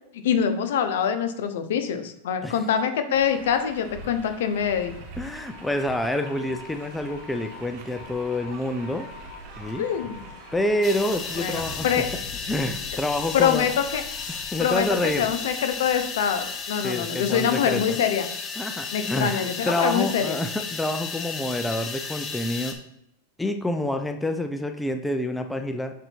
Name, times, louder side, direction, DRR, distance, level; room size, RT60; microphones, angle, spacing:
voice 1, 0.2-4.9 9.8-10.2 11.4-12.1 13.3-14.0 14.6-18.3 18.9-20.4, left 8 dB, 75° left, 8 dB, 0.9 m, -24 dB
sound 1, 3.1-11.8, right 4 dB, 50° right, 1.3 m, -45 dB
sound 2, 4.5-16.9, left 6 dB, 55° left, 1.2 m, -44 dB
voice 2, 5.2-9.1 9.6-9.9 10.5-11.9 12.5-13.7 14.5-15.3 16.8-18.0 18.6-22.8 23.4-25.9, left 1 dB, 5° left, 6 dB, 0.5 m, -27 dB
sound 3, 10.8-22.7, left 5 dB, 25° left, 0.9 m, -34 dB
6.4 x 4.0 x 4.5 m, 0.81 s
supercardioid pair, 135°, 0 cm